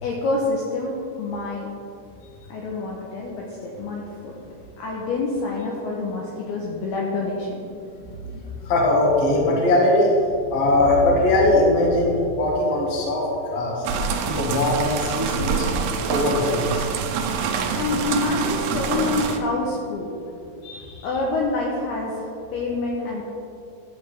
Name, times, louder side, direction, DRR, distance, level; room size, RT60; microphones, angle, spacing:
voice 1, 0.0-1.7 2.5-4.3 4.8-7.7 17.8-20.1 21.0-23.2, left 3 dB, 80° left, -3 dB, 2.3 m, -27 dB
voice 2, 8.0-10.1 10.5-13.8 14.2-15.6 16.1-16.9 20.6-21.1, left 2 dB, 65° left, -3 dB, 1.5 m, -21 dB
sound 1, 13.8-19.4, right 6 dB, 85° right, 2.4 m, -26 dB
12.5 x 7.7 x 3.4 m, 2.7 s
omnidirectional pair, 5.5 m